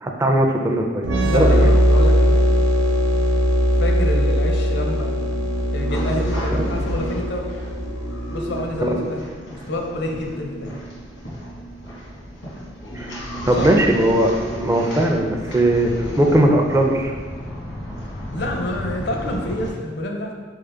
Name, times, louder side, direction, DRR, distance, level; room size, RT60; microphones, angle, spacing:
voice 1, 0.0-1.7 6.5-6.7 8.8-9.0 12.9-13.1 13.5-14.3 14.6-17.1, right 1 dB, 15° right, 2 dB, 0.4 m, -19 dB
sound 1, 1.0-8.6, equal, 75° right, 0.5 m, -19 dB
voice 2, 1.2-2.4 3.8-5.1 5.7-7.5 8.3-10.7 13.6-13.7 18.3-20.3, left 1 dB, 60° left, 1 dB, 0.7 m, -28 dB
sound 2, 3.5-19.7, equal, 80° left, 1.4 m, -33 dB
4.1 x 3.8 x 3.4 m, 1.5 s
head